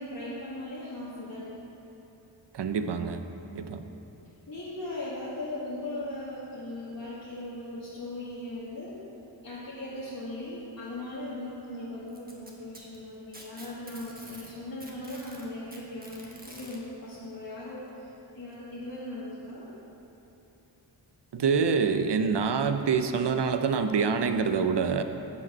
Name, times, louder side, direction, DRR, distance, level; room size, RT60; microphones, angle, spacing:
voice 1, 0.0-1.5 4.5-9.0 9.4-19.7, left 1 dB, 50° left, -10 dB, 1.5 m, -38 dB
voice 2, 2.5-3.2 3.5-3.8 21.3-25.0, right 5 dB, 65° right, 8 dB, 0.6 m, -26 dB
Packing tape duct tape, 12.1-14.5 14.8-16.8 17.9-18.0 18.5-18.6 19.5-19.6, right 1 dB, 20° right, 1.2 m, -48 dB
7.8 x 5.9 x 5.3 m, 2.9 s
wide cardioid pair, 55°, 45 cm